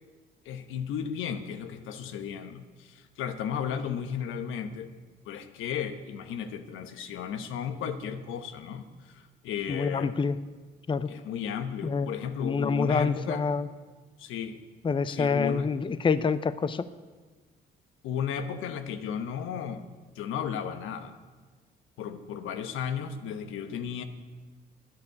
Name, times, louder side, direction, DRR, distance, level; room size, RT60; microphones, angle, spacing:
voice 1, 0.4-4.9 5.2-10.1 11.1-13.4 14.2-14.6 15.1-15.7 18.0-19.8 20.1-21.2 22.0-24.0, left 8 dB, 85° left, 9 dB, 1.2 m, -34 dB
voice 2, 9.7-10.3 10.9-11.1 11.8-12.1 12.4-13.7 14.8-16.8, left 5 dB, 25° left, 15 dB, 0.6 m, -27 dB
11.5 x 9.7 x 8.6 m, 1.3 s
cardioid pair, 90°, 20 cm